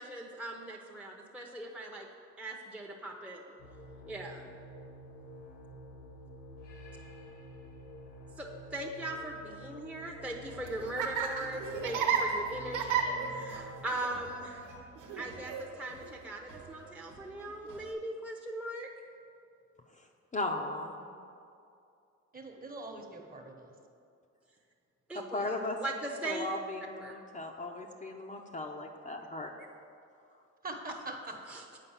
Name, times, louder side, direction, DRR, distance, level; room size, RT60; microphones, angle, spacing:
voice 1, 0.0-2.1 2.4-3.6 4.1-4.5 8.4-14.7 15.2-18.9 25.1-26.5 27.0-27.1 31.5-31.6, right 1 dB, 5° right, 0 dB, 0.8 m, -40 dB
sound 1, 3.6-13.8, equal, 85° left, 1.7 m, -49 dB
Laughter, 10.4-17.9, right 6 dB, 85° right, 1.1 m, -35 dB
voice 2, 20.3-21.1 25.1-25.8 26.2-29.5, left 2 dB, 25° left, 1 dB, 0.7 m, -37 dB
voice 3, 22.3-23.7 30.6-31.4, right 2 dB, 30° right, 3 dB, 1.1 m, -43 dB
8.3 x 4.9 x 7.1 m, 2.5 s
cardioid pair, 90°, 30 cm